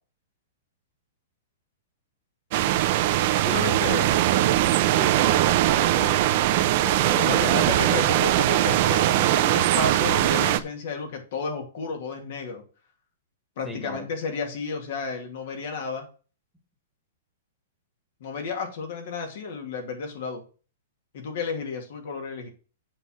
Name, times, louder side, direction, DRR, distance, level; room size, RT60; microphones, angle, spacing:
sound 1, 2.5-10.6, right 14 dB, 45° right, 0.7 m, -21 dB
voice 1, 3.4-4.3 7.1-12.6 13.6-16.1 18.2-20.4 21.1-22.5, left 5 dB, 60° left, 3 dB, 2.6 m, -32 dB
voice 2, 4.9-8.4 13.6-14.1, right 1 dB, ahead, 2 dB, 1.7 m, -36 dB
7.5 x 5.0 x 6.5 m, 0.37 s
hypercardioid pair, 155°, 0 cm